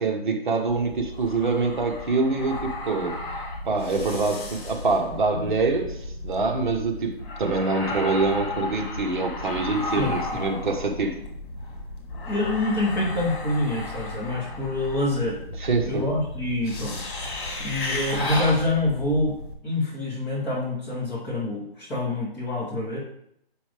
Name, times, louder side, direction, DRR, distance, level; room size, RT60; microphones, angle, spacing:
voice 1, 0.0-3.2 3.7-6.0 6.2-11.2 15.6-16.0, right 3 dB, 50° right, 3 dB, 1.2 m, -25 dB
sound 1, 0.7-19.5, left 2 dB, 55° left, 1.9 m, -34 dB
voice 2, 10.0-10.4 12.2-15.4 15.9-17.0 17.6-19.4 19.6-23.0, left 2 dB, 5° left, -7 dB, 0.8 m, -26 dB
7.4 x 5.3 x 3.4 m, 0.74 s
hypercardioid pair, 155°, 31 cm